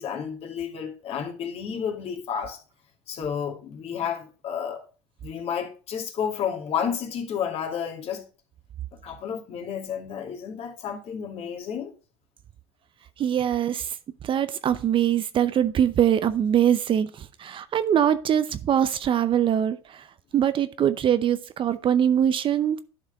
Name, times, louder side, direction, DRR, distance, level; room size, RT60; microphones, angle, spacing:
voice 1, 0.0-2.6 3.1-4.8 5.2-8.2 8.9-11.9, left 7 dB, 45° left, 2.4 m, -31 dB
voice 2, 13.2-14.0 14.2-20.0 20.3-22.8, right 9 dB, 35° right, 0.7 m, -23 dB
11.5 x 5.0 x 4.0 m
hypercardioid pair, 85°, 14 cm